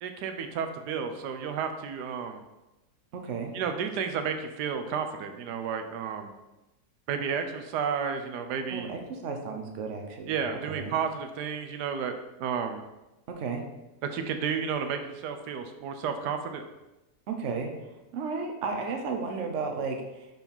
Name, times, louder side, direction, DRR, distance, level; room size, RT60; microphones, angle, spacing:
voice 1, 0.0-2.4 3.5-6.3 7.1-8.9 10.3-12.1 12.4-12.8 14.0-16.6, right 6 dB, 85° right, 6 dB, 1.2 m, -32 dB
voice 2, 3.1-3.5 8.7-10.4 10.7-10.9 13.3-13.6 17.3-20.3, right 4 dB, 55° right, 3 dB, 1.1 m, -34 dB
5.3 x 4.6 x 5.4 m, 1.0 s
omnidirectional pair, 1.7 m